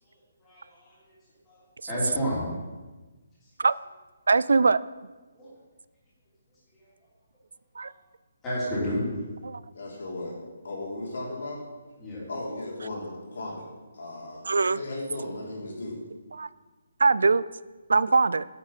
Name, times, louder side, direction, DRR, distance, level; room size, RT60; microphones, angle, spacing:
voice 1, 0.4-1.1 1.4-1.6 1.9-2.5 3.4-3.5 5.3-5.5 6.7-6.9 7.8-7.9 8.4-9.0 12.0-12.2, equal, 10° left, -8 dB, 2.9 m, -32 dB
voice 2, 4.3-4.8 7.8-7.9 9.5-9.6 14.5-14.8 16.4-16.5 17.0-17.4 17.9-18.5, right 4 dB, 85° right, 18 dB, 0.3 m, -21 dB
voice 3, 9.7-10.4 10.6-11.6 12.3-13.6 13.9-14.5 14.7-16.0, left 2 dB, 65° left, -2 dB, 3.1 m, -36 dB
8.5 x 7.3 x 5.5 m, 1.2 s
hypercardioid pair, 175°, 0 cm